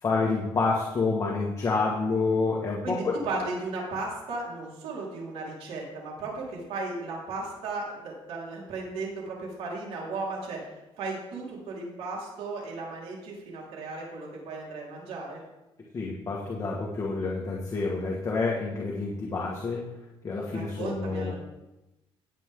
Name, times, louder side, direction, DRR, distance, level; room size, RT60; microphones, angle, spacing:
voice 1, 0.0-3.2 15.9-19.8 20.2-21.3, left 3 dB, 30° left, -3 dB, 1.9 m, -28 dB
voice 2, 2.8-10.6 11.0-15.4 20.5-21.3, right 3 dB, 85° right, -4 dB, 4.6 m, -35 dB
18.0 x 8.4 x 3.9 m, 0.98 s
cardioid pair, 130°, 10 cm